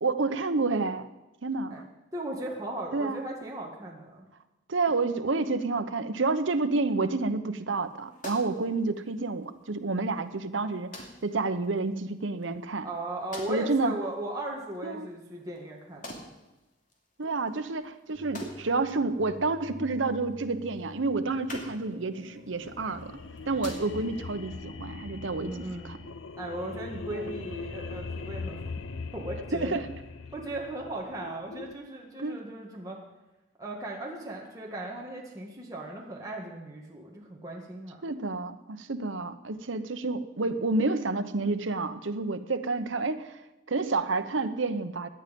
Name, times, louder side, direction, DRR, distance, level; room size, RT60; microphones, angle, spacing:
voice 1, 0.0-1.1 1.4-1.7 2.9-3.2 4.7-12.9 13.5-13.9 14.8-15.1 17.2-23.1 23.5-26.0 27.1-27.2 29.5-29.9 32.2-32.4 38.0-43.4 43.7-45.1, right 3 dB, 80° right, 10 dB, 0.9 m, -29 dB
voice 2, 1.7-4.3 12.8-16.2 25.4-25.9 26.4-28.7 29.1-29.8 30.3-33.0 33.6-38.0, right 1 dB, 20° right, -2 dB, 1.8 m, -37 dB
sound 1, 7.7-24.3, left 1 dB, 40° left, 2.7 m, -49 dB
sound 2, 18.1-26.1, equal, 55° right, 1.7 m, -50 dB
sound 3, 22.3-31.7, left 4 dB, 80° left, 0.7 m, -40 dB
17.0 x 10.5 x 5.3 m, 1.0 s
head